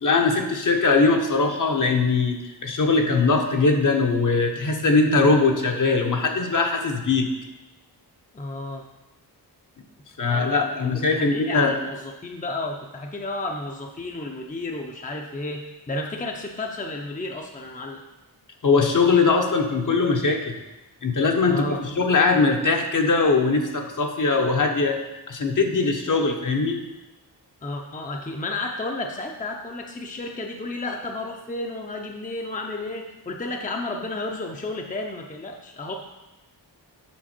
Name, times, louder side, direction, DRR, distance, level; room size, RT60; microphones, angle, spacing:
voice 1, 0.0-7.3 10.2-11.7 18.6-20.6 21.0-25.0 25.3-26.8, left 4 dB, 45° left, 3 dB, 1.0 m, -21 dB
voice 2, 8.3-8.9 10.2-18.0 21.4-21.8 27.6-35.9, left 2 dB, 20° left, 2 dB, 0.7 m, -32 dB
7.4 x 5.7 x 4.4 m, 1.0 s
wide cardioid pair, 95°, 41 cm